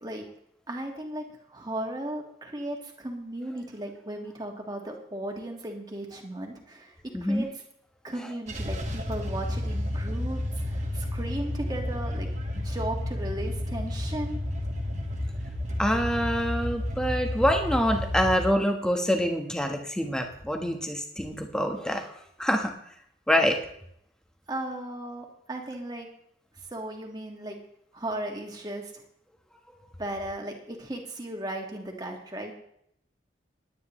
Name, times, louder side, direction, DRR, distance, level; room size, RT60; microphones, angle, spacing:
voice 1, 0.7-6.9 7.2-7.5 8.0-10.4 10.7-12.3 12.5-14.4 24.5-26.1 26.7-27.6 27.9-29.0 30.0-32.5, right 1 dB, 20° right, 1 dB, 1.7 m, -36 dB
voice 2, 7.1-7.5 15.8-22.1 22.4-22.7 23.3-23.6, equal, 5° left, 3 dB, 1.2 m, -26 dB
sound 1, 8.5-18.4, left 1 dB, 40° right, 1.6 m, -31 dB
20.0 x 9.6 x 3.1 m, 0.71 s
head